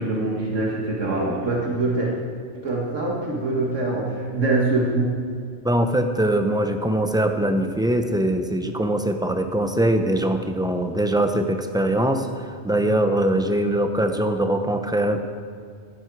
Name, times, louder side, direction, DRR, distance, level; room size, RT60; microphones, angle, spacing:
voice 1, 0.0-2.1 2.5-5.1, right 2 dB, 70° right, -2 dB, 2.0 m, -24 dB
voice 2, 5.6-15.3, right 1 dB, 5° right, 6 dB, 0.6 m, -22 dB
15.5 x 12.5 x 4.7 m, 2.1 s
omnidirectional pair, 1.3 m